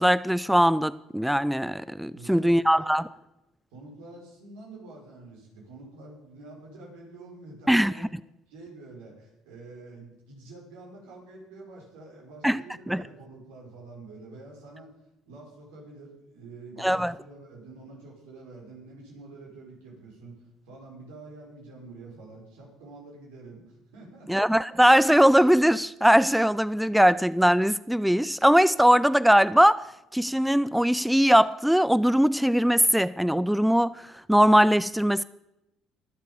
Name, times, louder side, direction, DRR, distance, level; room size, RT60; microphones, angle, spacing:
voice 1, 0.0-3.1 7.7-7.9 12.4-12.6 12.9-13.0 16.8-17.1 24.3-29.9 30.1-35.2, equal, ahead, 0.4 m, -21 dB
voice 2, 2.1-2.5 2.8-3.0 3.7-8.1 8.5-14.9 15.3-20.4 20.7-24.3, right 2 dB, 80° right, 5.5 m, -47 dB
22.5 x 7.6 x 5.3 m
hypercardioid pair, 70°, 0 cm